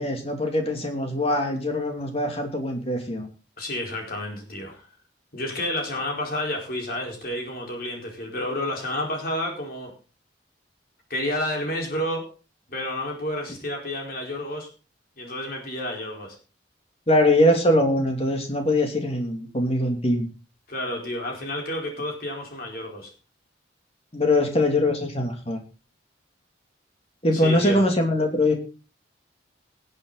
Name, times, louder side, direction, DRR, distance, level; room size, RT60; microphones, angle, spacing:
voice 1, 0.0-3.2 17.1-20.3 24.1-25.6 27.2-28.5, left 1 dB, 30° left, 3 dB, 2.7 m, -22 dB
voice 2, 3.6-4.8 5.3-9.9 11.1-12.2 12.7-14.7 15.2-16.4 20.7-23.1 27.3-27.8, left 1 dB, 50° left, 1 dB, 4.5 m, -30 dB
19.5 x 8.1 x 4.0 m, 0.35 s
head